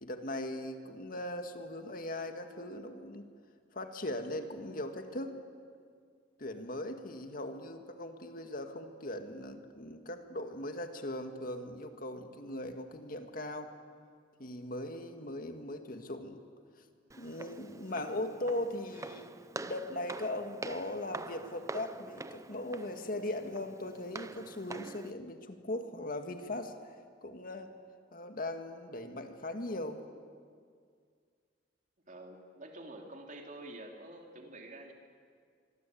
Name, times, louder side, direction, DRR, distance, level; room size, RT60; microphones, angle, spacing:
voice 1, 0.0-3.2 3.7-5.4 6.4-13.7 14.4-16.4 17.1-19.3 19.6-26.9 27.2-27.7 28.1-30.0, left 1 dB, 50° left, 6 dB, 2.0 m, -39 dB
Walk footsteps, 17.1-25.1, right 2 dB, 15° right, 0.7 m, -45 dB
voice 2, 32.1-34.9, right 1 dB, 45° right, 2 dB, 3.3 m, -48 dB
25.5 x 23.5 x 8.6 m, 2.1 s
head